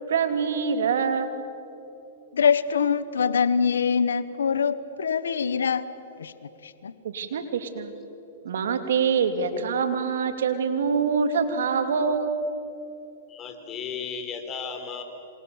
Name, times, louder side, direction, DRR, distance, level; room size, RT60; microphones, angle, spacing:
voice 1, 0.1-1.5 7.0-7.9 8.4-12.5, right 6 dB, 75° right, 8 dB, 2.7 m, -25 dB
voice 2, 2.3-5.8 6.2-6.3 6.6-6.9, left 6 dB, 90° left, 15 dB, 1.1 m, -24 dB
voice 3, 13.3-15.0, left 6 dB, 25° left, 5 dB, 4.0 m, -34 dB
27.5 x 26.5 x 7.2 m, 3.0 s
hypercardioid pair, 125°, 0 cm